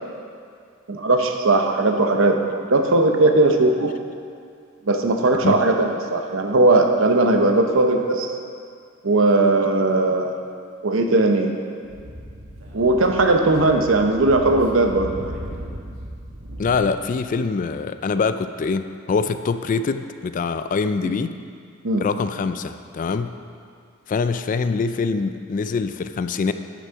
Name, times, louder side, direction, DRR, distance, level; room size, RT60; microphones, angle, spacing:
voice 1, 0.9-3.9 4.9-8.3 9.0-10.3 10.8-11.5 12.7-15.3 21.8-22.1, right 2 dB, 70° right, 4 dB, 0.8 m, -18 dB
Speech / Wind, 11.8-16.8, right 1 dB, 85° right, 1.3 m, -36 dB
voice 2, 16.6-21.4 22.0-23.3 24.1-26.5, left 4 dB, 40° left, 11 dB, 0.3 m, -24 dB
9.4 x 6.2 x 5.6 m, 2.3 s
head